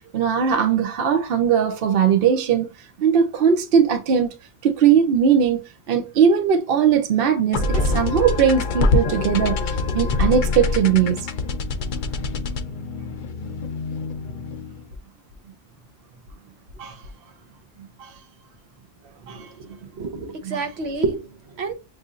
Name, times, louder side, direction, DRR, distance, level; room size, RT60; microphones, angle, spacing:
voice 1, 0.1-2.7 3.0-4.3 4.6-11.3 16.8-17.0 18.0-18.1 19.3-19.5 20.4-20.6, right 7 dB, 65° right, 0.8 m, -19 dB
sound 1, 7.5-14.9, left 3 dB, 55° left, 0.6 m, -25 dB
voice 2, 20.0-21.7, right 4 dB, 80° right, 1.1 m, -28 dB
6.1 x 2.5 x 2.4 m
omnidirectional pair, 1.1 m